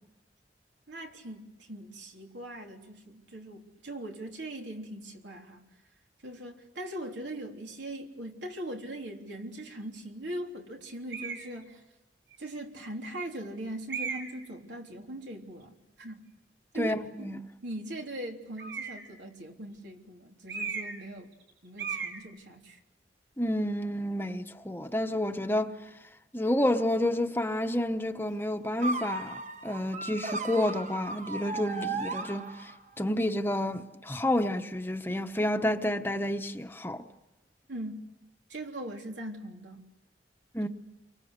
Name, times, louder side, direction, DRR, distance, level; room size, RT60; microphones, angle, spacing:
voice 1, 0.9-5.6 6.2-11.8 12.4-16.2 16.7-17.3 17.6-21.3 21.6-22.8 37.7-38.1 38.5-39.9, right 1 dB, 90° right, 3.5 m, -40 dB
sound 1, 11.1-11.5 12.3-12.4 13.9-14.4 18.6-19.1 20.5-21.1 21.3-21.5 21.8-22.2, right 6 dB, 70° right, 5.2 m, -36 dB
voice 2, 16.8-17.4 23.4-25.8 26.3-32.7 33.0-37.1 40.5-40.7, left 1 dB, 10° left, 1.0 m, -30 dB
sound 2, 28.8-32.9, right 3 dB, 40° right, 1.3 m, -36 dB
30.0 x 24.0 x 8.1 m
head